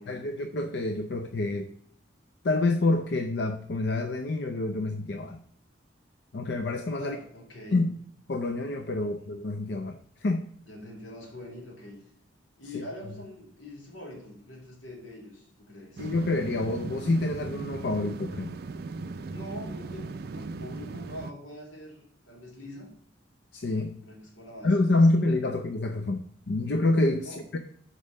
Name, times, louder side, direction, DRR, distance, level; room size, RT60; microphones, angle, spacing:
voice 1, 0.1-1.7 2.4-5.4 6.3-7.2 7.7-8.0 8.3-10.5 16.0-18.5 23.5-23.9 24.6-27.6, left 2 dB, 60° left, 6 dB, 0.5 m, -27 dB
voice 2, 7.0-7.8 9.0-9.3 10.6-12.0 12.6-16.1 19.3-20.1 20.3-22.9 24.0-25.1 25.4-25.5 27.2-27.4, left 1 dB, 80° left, -2 dB, 2.7 m, -44 dB
sound 1, 16.0-21.3, right 3 dB, 50° right, 0.4 m, -38 dB
5.4 x 4.9 x 6.4 m, 0.67 s
head